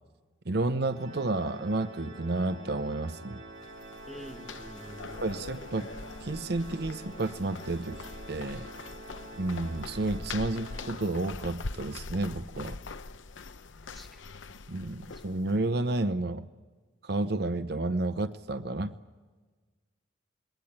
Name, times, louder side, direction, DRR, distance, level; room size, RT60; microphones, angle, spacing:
voice 1, 0.5-3.4 5.2-5.9 6.2-8.7 9.4-12.8 14.7-16.5 17.0-18.9, right 2 dB, 55° right, 11 dB, 0.8 m, -31 dB
Organ, 0.9-11.6, right 2 dB, 85° right, 5.6 m, -47 dB
sound 1, 3.5-15.6, left 3 dB, 80° left, 0.8 m, -43 dB
voice 2, 4.1-5.3 13.8-14.2 15.1-15.2, equal, ahead, 4 dB, 1.8 m, -47 dB
27.5 x 21.5 x 8.8 m, 1.4 s
head